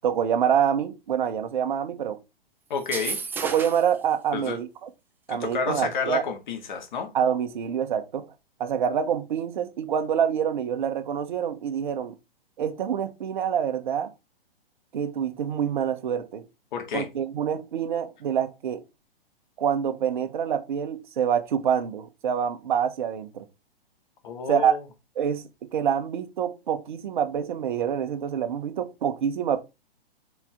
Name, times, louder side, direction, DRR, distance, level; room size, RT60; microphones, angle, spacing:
voice 1, 0.0-2.2 3.4-4.9 5.3-6.2 7.1-8.2 8.6-12.1 12.6-14.1 14.9-16.4 16.9-18.8 19.6-23.4 24.5-24.7 25.2-25.4 25.7-29.6, right 8 dB, 50° right, 1.3 m, -26 dB
voice 2, 2.7-3.2 4.3-4.6 5.3-7.1 16.7-17.1 24.2-24.8, left 5 dB, 50° left, 2.2 m, -30 dB
sound 1, 2.8-4.0, right 5 dB, 5° right, 0.5 m, -32 dB
7.3 x 4.5 x 3.7 m
figure-of-eight pair, 115°, 30 cm